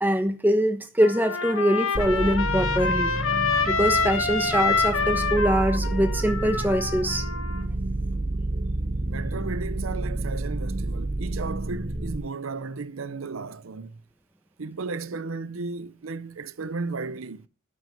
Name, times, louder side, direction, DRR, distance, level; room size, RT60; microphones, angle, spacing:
voice 1, 0.0-3.1 3.7-7.2, equal, 10° right, 1.2 m, -23 dB
Trumpet, 1.0-7.6, left 4 dB, 85° left, 1.6 m, -27 dB
sound 1, 1.9-12.2, right 2 dB, 40° right, 0.9 m, -30 dB
voice 2, 9.1-14.0 14.6-17.5, right 4 dB, 85° right, 0.7 m, -34 dB
12.5 x 6.1 x 5.9 m
head